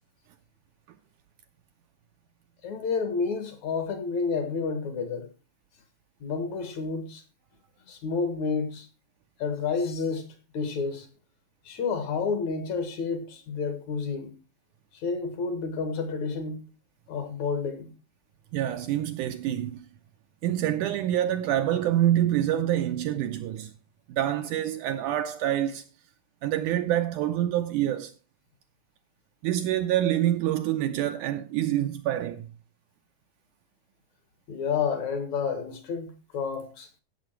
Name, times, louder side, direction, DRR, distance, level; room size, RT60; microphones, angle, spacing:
voice 1, 2.6-5.3 6.2-7.2 7.9-8.9 9.4-11.1 11.7-14.3 14.9-16.7 17.1-17.9 34.5-36.9, left 5 dB, 60° left, 2.5 m, -30 dB
voice 2, 18.5-19.9 20.4-23.7 24.1-25.8 26.4-28.1 29.4-32.5, right 12 dB, 75° right, 1.9 m, -26 dB
15.5 x 7.0 x 4.5 m
omnidirectional pair, 4.0 m